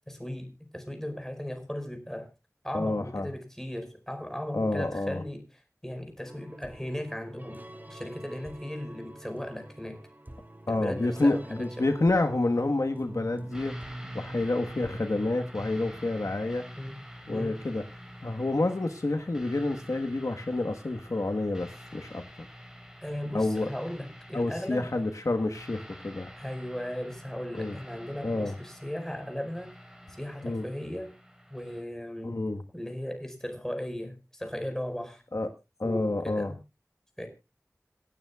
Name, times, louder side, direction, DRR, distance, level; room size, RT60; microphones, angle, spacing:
voice 1, 0.0-2.3 2.6-5.4 5.8-7.6 7.9-10.0 10.7-11.9 16.8-17.0 17.3-17.6 23.0-24.9 26.4-29.7 30.2-31.2 31.5-32.4 32.7-35.2 35.8-36.6 37.2-37.3, equal, 10° left, 6 dB, 5.0 m, -37 dB
voice 2, 2.7-3.3 4.5-5.2 10.7-13.7 14.1-16.6 17.3-17.8 18.2-22.2 23.3-23.7 24.3-26.3 27.5-27.8 28.2-28.5 30.4-30.6 32.2-32.6 35.3-35.5 35.8-36.5, left 2 dB, 75° left, 5 dB, 1.3 m, -28 dB
sound 1, 6.2-18.8, right 1 dB, 35° right, 2.6 m, -46 dB
sound 2, 13.5-31.8, equal, 10° right, 3.9 m, -47 dB
27.0 x 9.4 x 2.3 m, 0.28 s
wide cardioid pair, 50°, 6 cm